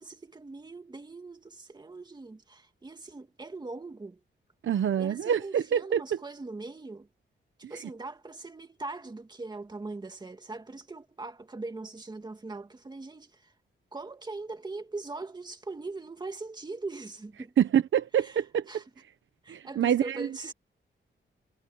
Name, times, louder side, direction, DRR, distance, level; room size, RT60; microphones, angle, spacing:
voice 1, 0.0-4.2 5.0-7.1 7.6-13.5 13.9-17.5 18.2-18.8 19.4-20.5, right 3 dB, 20° right, 2.2 m, -41 dB
voice 2, 4.6-6.2 17.6-18.6 19.5-20.3, right 9 dB, 80° right, 1.0 m, -26 dB
wide cardioid pair, 170°, 20 cm